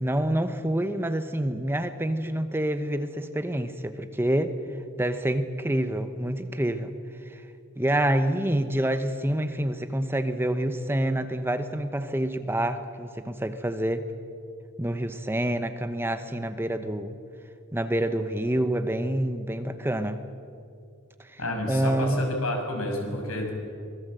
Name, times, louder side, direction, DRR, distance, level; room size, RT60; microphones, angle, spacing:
voice 1, 0.0-4.6 5.0-6.9 7.3-7.4 7.8-14.1 14.8-17.2 17.7-20.2 21.2-21.4 21.7-22.2, right 1 dB, 10° right, 9 dB, 0.9 m, -27 dB
voice 2, 21.4-23.5, left 1 dB, 85° left, 1 dB, 6.2 m, -30 dB
24.5 x 20.5 x 7.8 m, 2.3 s
head